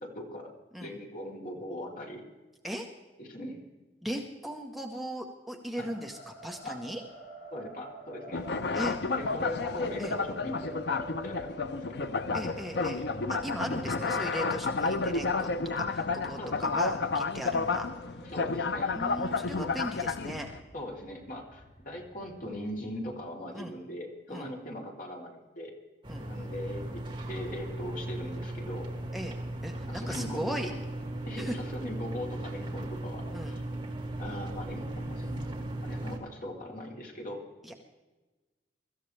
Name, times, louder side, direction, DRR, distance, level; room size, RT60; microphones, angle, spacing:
voice 1, 0.0-0.5 0.8-2.2 3.2-3.6 5.8-5.9 6.6-6.8 7.5-8.4 9.2-10.8 11.2-12.1 16.4-16.8 18.2-18.9 20.7-25.8 26.1-28.9 29.9-30.6 31.2-33.6 34.2-37.4, left 1 dB, 50° left, -1 dB, 3.4 m, -40 dB
voice 2, 4.0-7.0 8.7-8.9 10.0-10.2 12.3-13.0 13.3-18.2 18.9-20.5 23.5-23.7 24.3-24.5 26.1-26.3 29.1-29.4 29.6-30.7 31.4-31.5 33.3-33.6 37.6-37.8, equal, ahead, 1 dB, 1.1 m, -38 dB
sound 1, 5.8-23.2, right 1 dB, 35° left, 6.1 m, -48 dB
sound 2, 8.3-20.6, left 4 dB, 70° left, 0.6 m, -31 dB
sound 3, 26.0-36.2, right 1 dB, 30° right, 2.3 m, -37 dB
24.0 x 14.0 x 3.3 m, 1.2 s
head